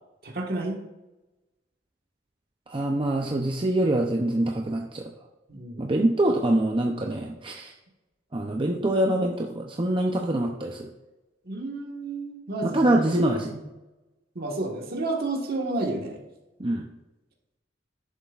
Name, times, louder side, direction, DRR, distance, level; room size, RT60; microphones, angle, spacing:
voice 1, 0.2-0.8 5.5-5.9 11.4-13.1 13.5-13.6 14.3-16.2, right 2 dB, 55° right, 1 dB, 1.6 m, -31 dB
voice 2, 2.7-5.1 5.8-7.7 8.3-10.9 12.6-13.5 16.6-16.9, right 1 dB, 25° right, 1 dB, 0.6 m, -25 dB
11.5 x 7.2 x 2.5 m, 1.0 s
head